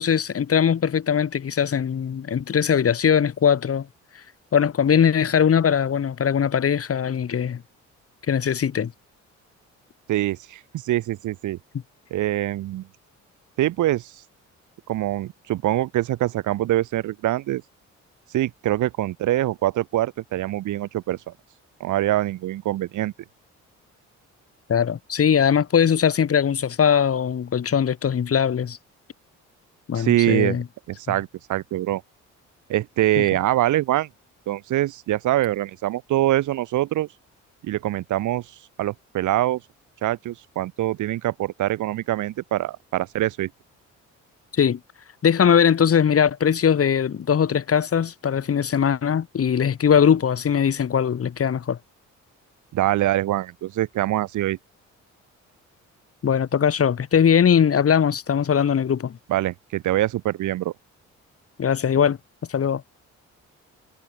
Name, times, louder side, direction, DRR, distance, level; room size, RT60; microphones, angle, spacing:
voice 1, 0.0-3.9 4.5-7.6 8.3-8.9 24.7-28.8 29.9-30.6 33.2-33.3 44.6-44.8 45.2-51.8 56.2-59.2 61.6-62.2 62.5-62.8, left 8 dB, 50° left, 3.6 m, -20 dB
voice 2, 10.1-11.6 12.1-12.9 13.6-14.1 14.9-17.6 18.3-21.3 21.8-23.1 29.9-30.6 30.9-32.0 32.7-34.1 34.5-37.1 37.6-38.5 38.8-39.6 40.0-43.5 52.7-54.6 59.3-60.7, right 14 dB, 75° right, 1.3 m, -24 dB
cardioid pair, 90°, 30 cm